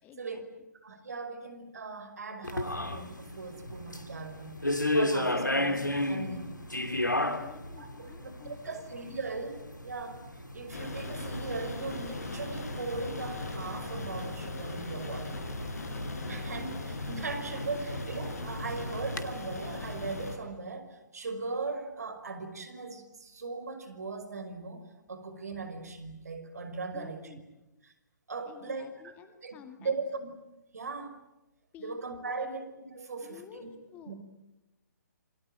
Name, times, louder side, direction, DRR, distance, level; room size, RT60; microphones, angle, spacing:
voice 1, 0.0-0.7 7.4-8.8 26.9-27.4 28.4-29.9 31.7-32.0 32.2-32.5 33.2-34.1, left 8 dB, 15° left, 8 dB, 2.2 m, -51 dB
voice 2, 0.8-6.5 7.8-10.2 10.5-15.4 16.3-27.3 27.8-27.9 28.3-29.1 29.4-30.3 30.7-31.2 31.8-33.7 34.1-34.2, right 4 dB, 60° right, 9 dB, 5.6 m, -39 dB
sound 1, 2.4-19.2, left 1 dB, 85° left, 2.7 m, -35 dB
sound 2, 10.7-20.4, left 2 dB, 55° left, 7.1 m, -38 dB
28.0 x 22.5 x 9.1 m, 0.98 s
figure-of-eight pair, 130°, 10 cm